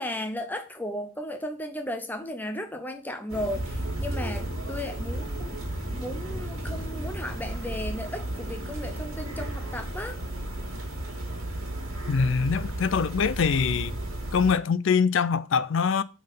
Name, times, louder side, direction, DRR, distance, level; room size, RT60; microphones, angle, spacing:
voice 1, 0.0-5.6 5.9-10.2, left 1 dB, 10° left, 0.6 m, -35 dB
sound 1, 3.3-14.5, right 1 dB, 75° right, 1.9 m, -33 dB
voice 2, 12.1-13.9 14.3-16.0, left 6 dB, 60° left, 0.4 m, -24 dB
5.3 x 4.0 x 5.5 m
head